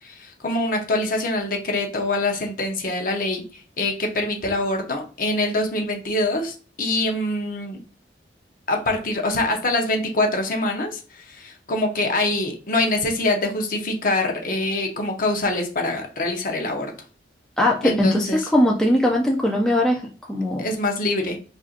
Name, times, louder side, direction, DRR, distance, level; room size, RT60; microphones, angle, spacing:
voice 1, 0.0-7.8 8.7-16.9 17.8-18.5 20.6-21.4, left 2 dB, 50° left, 3 dB, 0.7 m, -24 dB
voice 2, 17.6-20.6, left 1 dB, 5° left, -1 dB, 0.4 m, -20 dB
4.3 x 2.5 x 2.5 m, 0.38 s
head